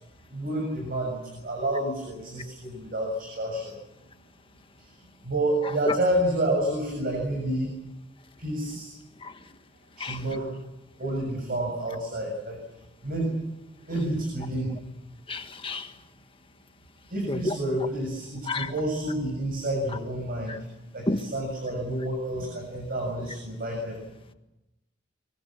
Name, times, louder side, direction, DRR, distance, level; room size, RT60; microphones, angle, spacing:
voice 1, 0.3-3.8 4.8-5.0 5.2-7.7 8.4-8.9 10.0-10.5 11.0-12.6 13.0-13.4 13.9-14.7 17.1-20.7 20.9-24.0, right 1 dB, 55° right, 1 dB, 7.0 m, -29 dB
voice 2, 15.3-15.9 17.3-17.5 18.5-18.7 21.1-21.2, left 2 dB, 30° left, 7 dB, 1.7 m, -29 dB
24.0 x 23.0 x 7.6 m, 0.94 s
head